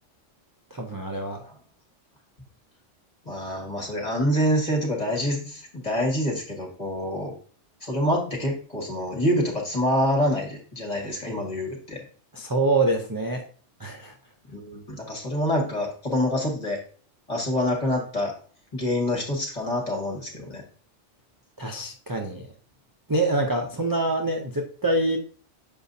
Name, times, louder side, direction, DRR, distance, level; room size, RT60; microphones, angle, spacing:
voice 1, 0.7-1.4 12.3-13.5 13.8-14.1 21.6-22.4 23.1-25.2, right 2 dB, 25° right, 2 dB, 0.4 m, -25 dB
voice 2, 3.3-7.3 7.8-12.0 14.5-16.8 17.3-18.3 18.7-20.6, equal, 30° left, 0 dB, 1.9 m, -26 dB
6.9 x 5.1 x 2.7 m, 0.42 s
omnidirectional pair, 1.3 m